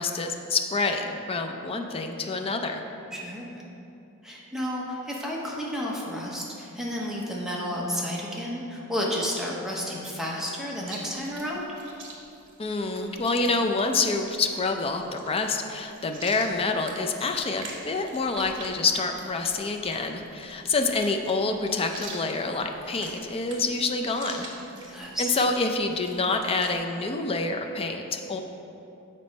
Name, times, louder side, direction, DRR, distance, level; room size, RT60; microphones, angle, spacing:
voice 1, 0.0-2.8 12.6-24.5 25.2-28.4, left 3 dB, 25° left, 5 dB, 0.4 m, -27 dB
voice 2, 3.1-3.6 4.2-11.7 24.9-25.3, equal, ahead, -4 dB, 0.8 m, -31 dB
Chewing mastication, 10.8-26.7, right 3 dB, 55° right, 1.1 m, -46 dB
6.9 x 4.3 x 5.2 m, 2.8 s
head